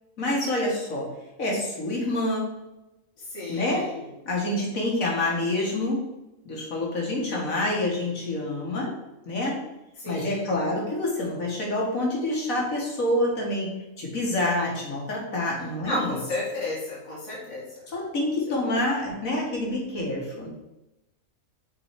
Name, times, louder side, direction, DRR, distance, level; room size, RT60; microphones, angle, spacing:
voice 1, 0.2-1.1 1.4-2.5 3.5-3.8 4.3-6.0 6.5-8.9 9.3-9.6 10.1-13.7 14.0-16.2 17.9-20.5, left 1 dB, 85° left, -2 dB, 2.2 m, -27 dB
voice 2, 3.2-4.1 7.3-7.6 10.0-10.5 15.8-17.8, left 1 dB, 65° left, -6 dB, 2.0 m, -33 dB
6.1 x 4.3 x 5.1 m, 0.95 s
omnidirectional pair, 1.4 m